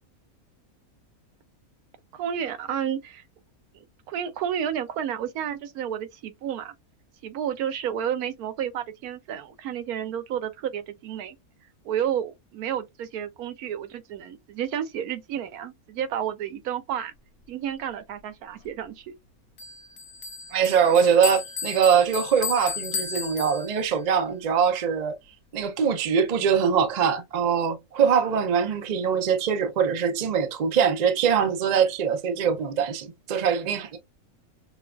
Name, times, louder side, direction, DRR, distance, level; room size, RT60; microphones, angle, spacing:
voice 1, 2.1-3.2 3.7-6.7 7.2-11.4 11.8-17.1 17.5-19.1, right 9 dB, 80° right, 1.1 m, -31 dB
Bell, 19.6-24.1, left 6 dB, 75° left, 1.1 m, -34 dB
voice 2, 20.5-25.2 25.5-34.0, right 7 dB, 60° right, 0.4 m, -23 dB
5.4 x 2.3 x 2.4 m
omnidirectional pair, 1.6 m